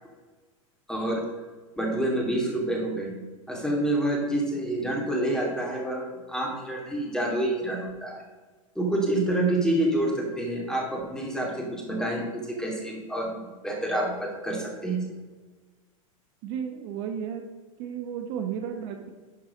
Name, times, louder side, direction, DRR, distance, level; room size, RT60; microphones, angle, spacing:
voice 1, 0.9-1.2 1.8-3.1 3.5-8.2 8.7-15.2, right 1 dB, 5° left, -1 dB, 2.5 m, -28 dB
voice 2, 16.4-17.4 17.8-19.1, right 8 dB, 55° right, 5 dB, 1.2 m, -33 dB
11.5 x 4.7 x 5.2 m, 1.4 s
hypercardioid pair, 105°, 18 cm